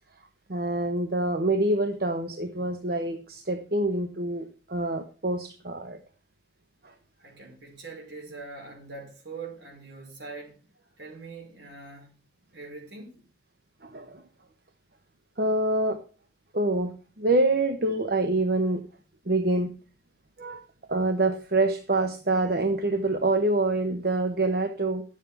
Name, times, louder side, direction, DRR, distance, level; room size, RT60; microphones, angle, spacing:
voice 1, 0.5-6.0 6.8-6.9 13.8-14.2 15.4-16.0 16.5-18.8 19.3-19.7 20.4-20.6 20.9-25.0, right 2 dB, 60° right, 1.0 m, -26 dB
voice 2, 7.2-10.6 11.0-12.1 12.5-13.3, right 3 dB, 80° right, 5.4 m, -42 dB
11.5 x 7.5 x 5.7 m
head